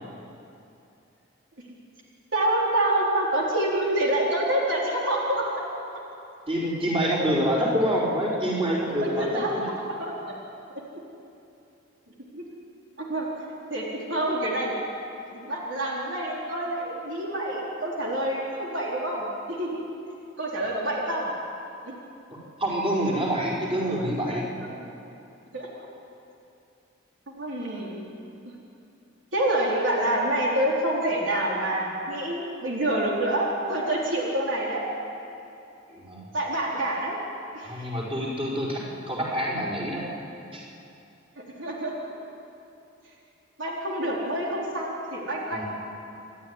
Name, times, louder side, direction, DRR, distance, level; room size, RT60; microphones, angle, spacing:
voice 1, 2.3-5.5 9.0-9.5 10.0-10.3 12.3-12.4 13.0-13.3 13.7-14.7 15.3-19.8 20.4-21.3 21.8-22.0 25.5-25.7 27.4-28.1 29.3-34.8 36.3-37.2 37.5-37.9 41.4-41.9 43.6-45.6, right 1 dB, 75° right, -3 dB, 4.0 m, -27 dB
voice 2, 6.5-9.7 22.6-24.5 35.9-36.3 37.6-38.8 39.1-40.0 40.5-40.6 45.5-45.6, equal, 30° right, -5 dB, 4.9 m, -26 dB
28.5 x 12.5 x 9.8 m, 2.7 s
head